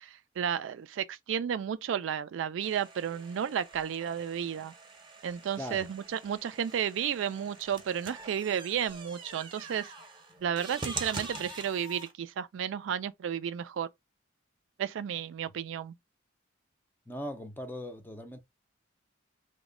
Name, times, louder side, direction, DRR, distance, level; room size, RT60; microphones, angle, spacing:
voice 1, 0.0-4.7 5.2-9.9 10.4-13.9 14.8-15.9, right 8 dB, 75° right, 0.3 m, -33 dB
sound 1, 2.6-12.1, right 3 dB, 25° right, 0.7 m, -44 dB
voice 2, 5.6-5.9 17.1-18.4, equal, 10° left, 0.4 m, -39 dB
3.0 x 2.1 x 3.6 m
head